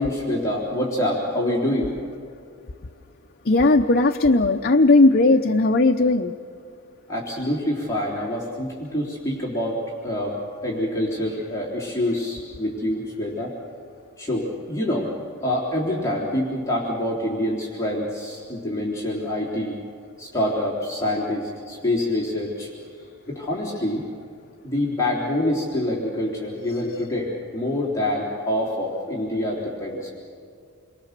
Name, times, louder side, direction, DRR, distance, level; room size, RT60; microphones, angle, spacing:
voice 1, 0.0-2.0 7.1-13.5 14.2-15.1 15.4-19.8 20.2-22.7 23.3-24.0 24.6-30.1, left 1 dB, 15° left, -6 dB, 3.5 m, -26 dB
voice 2, 3.5-6.3, left 2 dB, 45° left, 4 dB, 0.7 m, -17 dB
28.5 x 23.0 x 6.7 m, 2.4 s
head